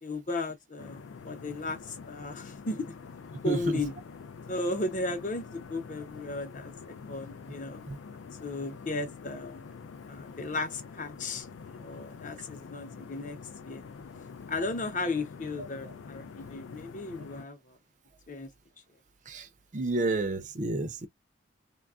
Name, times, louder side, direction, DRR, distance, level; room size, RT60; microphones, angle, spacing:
voice 1, 0.0-2.9 3.4-3.9 4.5-7.8 8.4-9.7 10.1-11.5 11.8-13.4 13.6-13.9 14.5-17.8 18.3-18.5, left 2 dB, 40° left, 0.7 m, -35 dB
sound 1, 0.8-17.5, left 5 dB, 75° left, 0.3 m, -46 dB
voice 2, 3.4-3.8 7.9-8.0 15.6-15.9 19.3-21.1, right 2 dB, 40° right, 0.4 m, -31 dB
3.2 x 2.3 x 2.4 m
head